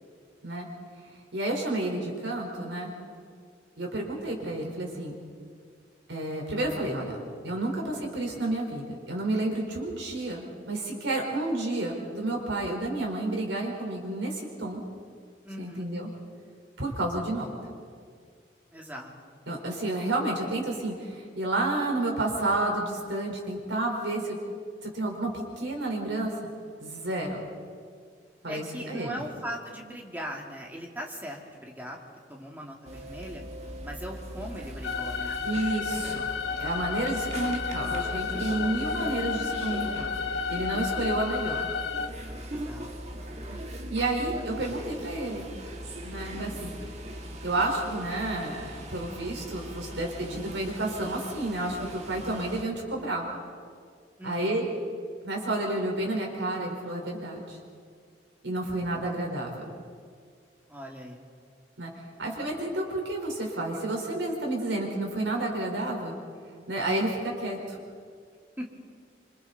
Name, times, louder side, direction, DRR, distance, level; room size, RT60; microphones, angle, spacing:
voice 1, 1.3-2.9 3.8-5.2 6.1-7.1 7.4-14.8 15.6-16.1 16.8-17.5 19.5-24.4 24.8-26.3 26.8-27.4 28.4-29.1 35.4-36.2 36.6-40.1 40.5-41.7 43.9-45.4 46.1-46.7 47.4-53.3 54.2-54.7 55.2-57.6 58.4-59.5 61.8-61.9 62.2-66.1 66.7-67.8, right 2 dB, 85° right, 0 dB, 4.5 m, -30 dB
voice 2, 15.4-15.9 18.7-19.4 28.5-32.0 32.3-33.4 33.8-35.4 38.3-38.8 42.5-42.9 54.2-54.6 58.9-59.1 60.7-61.2 68.6-68.7, equal, 10° right, 0 dB, 2.4 m, -40 dB
sound 1, 32.8-52.6, equal, 35° right, 1.8 m, -39 dB
sound 2, 34.8-42.1, left 6 dB, 90° left, 1.1 m, -32 dB
26.5 x 26.0 x 4.2 m, 2.1 s
head